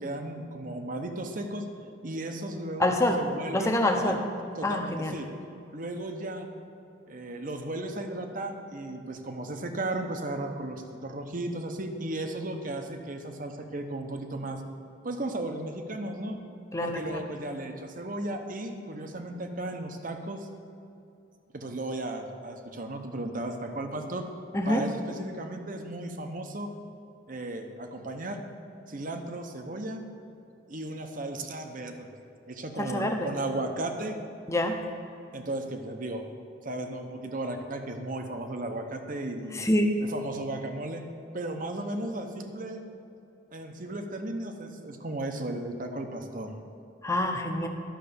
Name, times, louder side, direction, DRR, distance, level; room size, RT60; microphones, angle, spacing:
voice 1, 0.0-1.6 2.0-4.1 4.5-5.3 5.7-6.5 7.1-14.6 15.0-16.4 16.8-20.5 21.5-24.3 24.7-26.7 27.3-28.4 28.9-30.0 30.7-32.2 32.5-34.2 35.3-36.2 36.6-39.6 40.0-41.0 41.3-42.8 43.5-46.6, right 1 dB, 40° right, 5 dB, 0.9 m, -35 dB
voice 2, 2.8-3.2 3.5-4.2 4.6-5.2 16.7-17.2 24.5-24.8 32.8-33.3 34.5-34.8 39.5-39.9 47.0-47.7, left 1 dB, 15° left, 3 dB, 0.8 m, -26 dB
11.5 x 6.6 x 6.8 m, 2.7 s
head